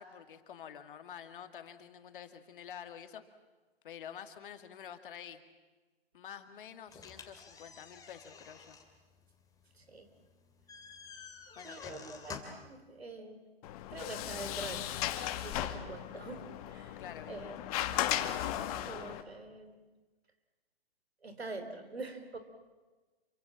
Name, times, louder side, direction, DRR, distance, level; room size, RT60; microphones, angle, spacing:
voice 1, 0.0-3.2 3.8-5.4 6.1-8.8 11.6-11.9 17.0-17.6, left 8 dB, 55° left, 9 dB, 2.3 m, -48 dB
sound 1, 6.9-12.7, left 5 dB, 10° left, 2.9 m, -50 dB
voice 2, 9.8-10.1 11.6-13.4 13.9-17.0 17.3-17.5 18.9-19.7 21.2-22.4, right 3 dB, 85° right, 9 dB, 3.7 m, -45 dB
Sliding door, 13.6-19.2, left 12 dB, 35° left, 1.8 m, -36 dB
27.5 x 24.5 x 7.4 m, 1.2 s
hypercardioid pair, 125°, 31 cm